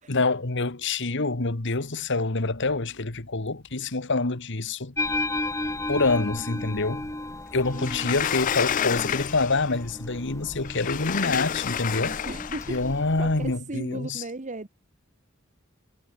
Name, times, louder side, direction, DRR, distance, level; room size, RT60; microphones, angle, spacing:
voice 1, 0.1-4.9 5.9-7.1 7.5-12.2 12.7-14.2, left 3 dB, 55° left, 1.6 m, -26 dB
sound 1, 5.0-13.6, left 2 dB, 15° left, 1.5 m, -34 dB
voice 2, 6.3-6.8 7.7-8.3 11.9-12.8 13.2-14.7, right 2 dB, 35° right, 1.1 m, -37 dB
Sliding door, 7.8-9.7 10.6-12.8, left 9 dB, 40° left, 0.3 m, -29 dB
head